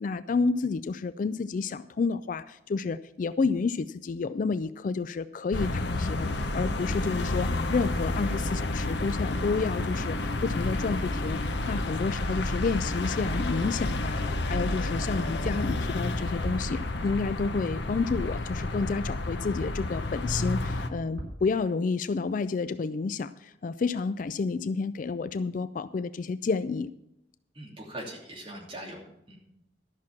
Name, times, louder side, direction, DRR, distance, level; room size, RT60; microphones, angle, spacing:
voice 1, 0.0-26.9, left 4 dB, 40° left, 14 dB, 0.3 m, -30 dB
sound 1, 5.5-20.9, left 2 dB, 60° left, 0.9 m, -30 dB
sound 2, 12.0-12.3 13.4-14.0 15.4-15.8 16.4-16.9 20.9-21.0 21.2-21.5, equal, 75° right, 3.6 m, -37 dB
voice 2, 27.5-29.0 29.3-29.5, right 1 dB, 25° right, -2 dB, 2.9 m, -41 dB
13.0 x 6.0 x 7.3 m, 0.83 s
head